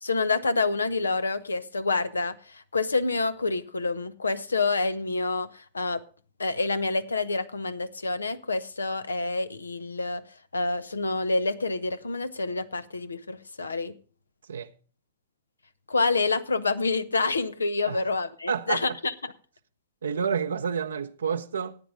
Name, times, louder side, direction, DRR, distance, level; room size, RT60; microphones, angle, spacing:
voice 1, 0.0-6.0 6.4-10.2 10.5-13.9 15.9-19.1, left 3 dB, 85° left, 0.8 m, -27 dB
voice 2, 18.5-19.0 20.0-21.8, right 6 dB, 75° right, 0.7 m, -29 dB
14.0 x 9.1 x 5.0 m
figure-of-eight pair, 105°, 0 cm